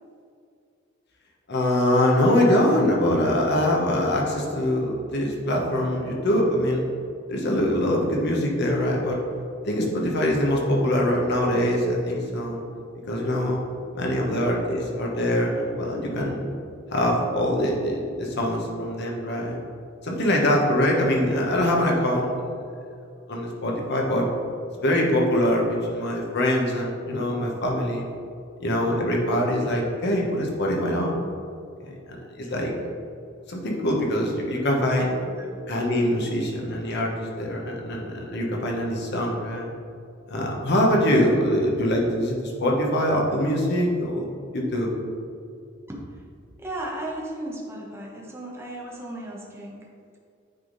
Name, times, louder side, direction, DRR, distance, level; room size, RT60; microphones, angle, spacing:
voice 1, 1.5-6.9 7.3-9.2 9.6-12.6 13.1-13.6 13.9-16.4 16.9-19.6 20.0-22.3 23.3-24.3 24.7-28.1 28.6-31.2 31.8-32.7 33.5-35.2 35.7-39.7 40.3-44.2 44.5-44.9, left 1 dB, 60° left, -1 dB, 1.1 m, -23 dB
voice 2, 45.9-46.2 46.6-49.9, right 1 dB, 15° right, -3 dB, 1.0 m, -35 dB
9.2 x 3.6 x 4.0 m, 2.3 s
head